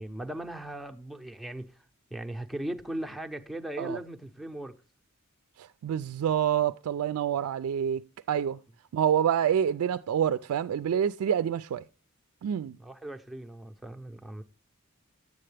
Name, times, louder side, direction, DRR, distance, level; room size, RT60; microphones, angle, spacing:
voice 1, 0.0-1.8 2.1-4.7 12.8-14.4, right 1 dB, ahead, 0.6 m, -38 dB
voice 2, 5.6-8.0 8.3-8.6 8.9-11.8 12.4-12.8, right 9 dB, 90° right, 0.3 m, -27 dB
9.3 x 7.6 x 3.3 m
head